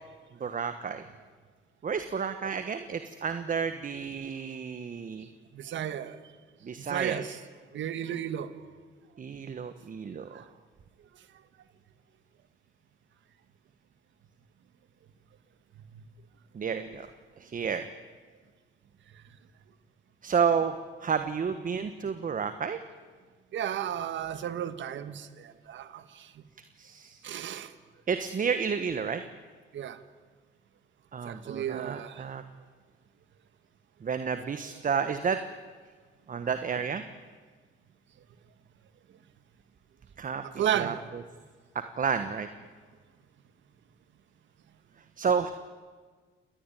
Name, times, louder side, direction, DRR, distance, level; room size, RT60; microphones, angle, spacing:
voice 1, 0.4-1.0 1.8-5.3 6.6-7.2 9.2-10.4 16.5-17.1 17.4-17.8 20.2-22.8 26.8-27.2 28.1-29.2 31.1-32.4 34.0-35.4 36.3-37.0 40.2-40.4 40.7-40.9 42.0-42.5 45.2-45.5, right 6 dB, 40° right, 1.3 m, -31 dB
voice 2, 5.5-6.2 6.8-7.4 7.7-8.5 10.3-10.4 15.9-16.0 23.5-26.3 27.2-27.7 29.7-30.0 31.2-32.2 34.6-34.7 40.4-41.0, right 10 dB, 70° right, 1.6 m, -33 dB
27.0 x 19.5 x 9.1 m
cardioid pair, 90°, 20 cm